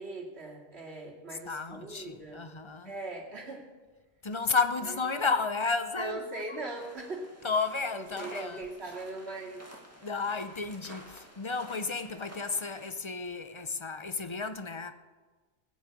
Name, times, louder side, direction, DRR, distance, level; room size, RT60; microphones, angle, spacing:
voice 1, 0.0-2.4 2.8-3.7 6.0-7.3 7.9-9.8, right 2 dB, 60° right, 2.6 m, -40 dB
voice 2, 1.5-2.9 4.2-6.4 7.4-8.6 10.0-14.9, left 4 dB, 35° left, 0.5 m, -32 dB
sound 1, 6.7-12.9, equal, 10° right, 2.1 m, -51 dB
18.5 x 6.3 x 8.5 m
omnidirectional pair, 1.2 m